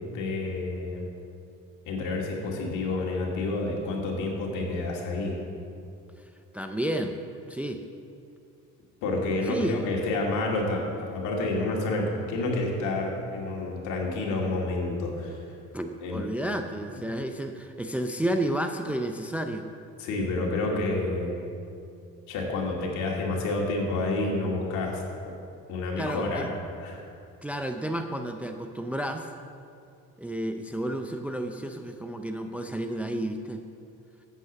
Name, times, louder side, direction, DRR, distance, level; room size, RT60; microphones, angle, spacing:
voice 1, 0.1-1.1 1.9-5.4 9.0-10.8 11.1-15.4 16.0-16.2 20.0-21.4 22.3-25.0 25.7-26.5 26.8-27.0, left 2 dB, 70° left, -1 dB, 2.5 m, -29 dB
voice 2, 6.5-7.2 7.5-7.8 9.4-9.8 15.7-19.7 26.0-26.5 27.4-29.3 30.2-33.7, right 1 dB, 5° right, 5 dB, 0.5 m, -31 dB
8.3 x 8.1 x 7.4 m, 2.5 s
cardioid pair, 115°, 31 cm